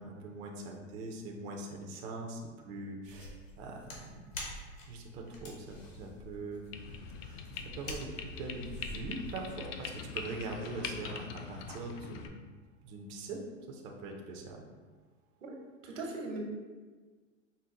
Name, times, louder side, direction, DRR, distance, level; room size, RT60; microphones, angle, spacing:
voice 1, 0.0-4.3 4.9-6.6 7.2-7.4 7.7-12.3 12.8-14.6, right 2 dB, 25° right, 1 dB, 0.3 m, -42 dB
sound 1, 3.0-9.4, left 1 dB, 80° left, 1.3 m, -47 dB
sound 2, 6.7-12.3, left 6 dB, 50° left, 0.5 m, -43 dB
voice 2, 15.8-16.4, right 3 dB, 80° right, 0 dB, 1.1 m, -39 dB
5.2 x 2.0 x 3.6 m, 1.4 s
hypercardioid pair, 110°, 38 cm